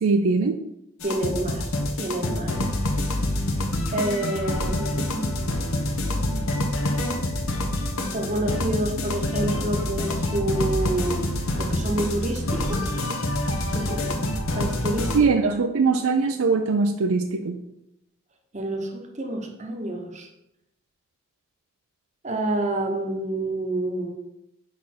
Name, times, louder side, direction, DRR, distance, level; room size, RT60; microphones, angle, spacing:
voice 1, 0.0-0.6 15.1-17.6, right 4 dB, 65° right, 6 dB, 0.4 m, -21 dB
sound 1, 1.0-15.2, left 1 dB, 70° left, 0.9 m, -26 dB
voice 2, 1.0-1.7 2.0-2.6 3.9-5.5 8.1-11.3 11.6-12.9 13.7-14.2 14.5-15.1 18.5-20.3 22.2-24.1, right 1 dB, 30° right, 2 dB, 0.9 m, -28 dB
4.9 x 4.2 x 5.8 m, 0.86 s
head